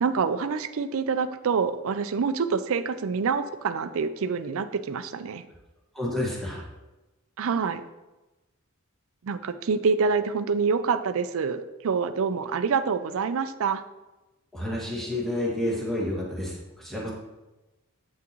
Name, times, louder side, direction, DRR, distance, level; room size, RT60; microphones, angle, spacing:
voice 1, 0.0-5.4 7.4-7.8 9.2-13.8, right 5 dB, 65° right, 11 dB, 0.4 m, -26 dB
voice 2, 5.9-6.6 14.5-17.1, left 1 dB, ahead, -6 dB, 1.7 m, -30 dB
8.2 x 6.0 x 3.0 m, 1.1 s
head